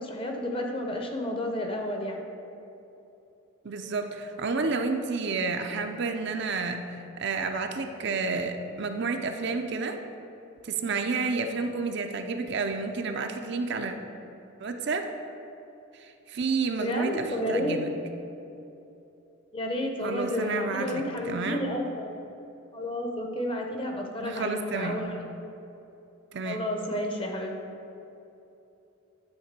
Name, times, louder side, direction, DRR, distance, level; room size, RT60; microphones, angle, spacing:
voice 1, 0.0-2.2 16.8-17.8 19.5-22.2 22.7-25.2 26.4-27.6, left 1 dB, 25° left, 2 dB, 0.8 m, -31 dB
voice 2, 3.6-6.8 7.2-10.0 10.6-13.9 14.6-15.1 15.9-17.9 20.0-21.7 24.2-25.0 26.3-26.6, right 4 dB, 55° right, 5 dB, 0.5 m, -30 dB
10.5 x 3.7 x 6.7 m, 2.9 s
head